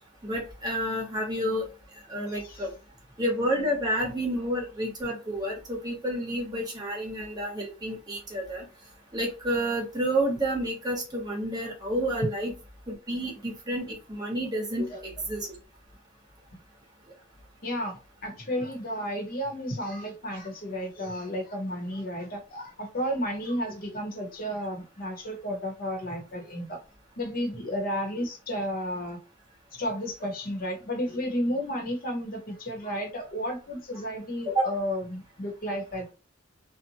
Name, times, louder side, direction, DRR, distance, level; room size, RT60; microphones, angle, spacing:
voice 1, 0.2-1.6 2.1-2.7 3.2-8.6 9.1-12.5 12.9-15.5 34.5-34.7, right 1 dB, 20° right, 1.0 m, -30 dB
voice 2, 2.3-2.7 14.8-15.0 17.6-26.8 27.2-29.2 29.7-36.1, equal, 45° left, 0.9 m, -32 dB
2.6 x 2.1 x 2.8 m
head